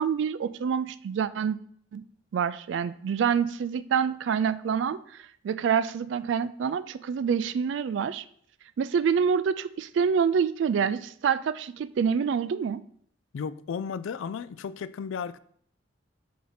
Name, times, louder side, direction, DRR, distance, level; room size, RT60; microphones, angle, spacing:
voice 1, 0.0-1.6 1.9-2.0 2.3-5.0 5.4-8.2 8.8-12.8, right 7 dB, 70° right, 0.3 m, -26 dB
voice 2, 13.3-15.4, left 6 dB, 90° left, 0.3 m, -34 dB
7.5 x 2.8 x 5.6 m
head